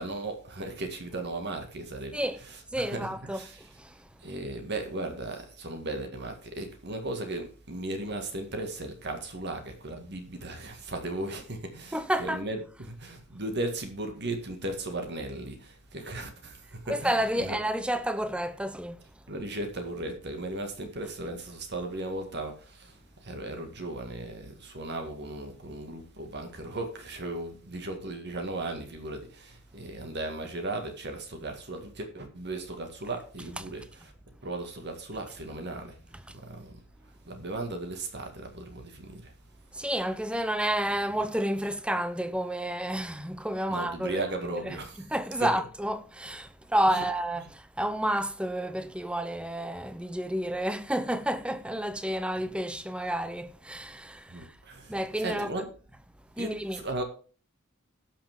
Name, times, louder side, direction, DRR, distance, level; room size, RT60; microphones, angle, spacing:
voice 1, 0.0-2.2 2.8-3.6 4.2-17.1 17.4-17.6 19.3-34.1 34.4-36.0 36.3-36.8 37.0-39.3 43.7-45.1 45.4-45.5 46.9-47.0 52.4-52.5 54.3-55.7 56.4-57.0, right 2 dB, 55° right, 2.0 m, -36 dB
voice 2, 2.7-4.1 11.9-12.4 16.9-19.2 36.3-36.4 39.7-54.6 54.9-55.5 56.4-56.8, right 1 dB, 5° right, 0.6 m, -30 dB
18.0 x 6.1 x 3.6 m
head